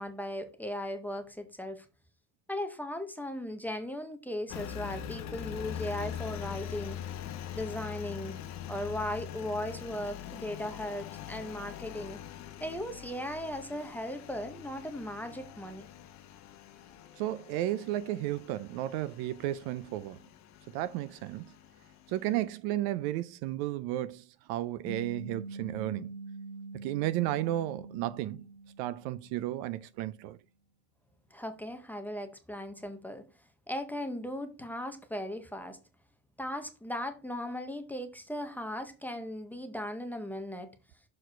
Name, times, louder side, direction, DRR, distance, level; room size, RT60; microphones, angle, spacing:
voice 1, 0.0-1.9 2.5-7.0 7.5-8.4 8.7-12.2 12.6-15.9 31.3-33.3 33.7-35.8 36.4-40.7, left 1 dB, 5° left, 0.6 m, -37 dB
Engine, 4.5-22.4, left 10 dB, 40° left, 0.8 m, -43 dB
voice 2, 17.2-20.2 20.7-21.5 22.1-26.1 26.8-28.5 28.8-30.4, right 14 dB, 60° right, 0.5 m, -33 dB
sound 1, 24.8-29.5, right 3 dB, 10° right, 1.9 m, -44 dB
6.5 x 4.6 x 4.4 m
supercardioid pair, 145°, 43 cm